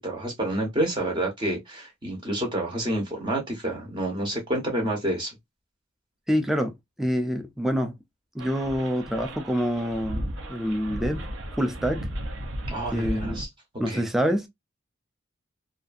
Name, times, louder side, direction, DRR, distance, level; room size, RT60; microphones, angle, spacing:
voice 1, 0.0-5.3 12.7-13.5 13.9-14.0, right 1 dB, 25° right, 0.8 m, -28 dB
voice 2, 6.3-8.0 8.3-10.2 10.5-11.3 11.6-12.0 12.9-13.4 13.8-14.5, equal, ahead, 0.4 m, -26 dB
sound 1, 8.4-13.5, right 1 dB, 70° right, 0.6 m, -35 dB
2.6 x 2.3 x 2.5 m
head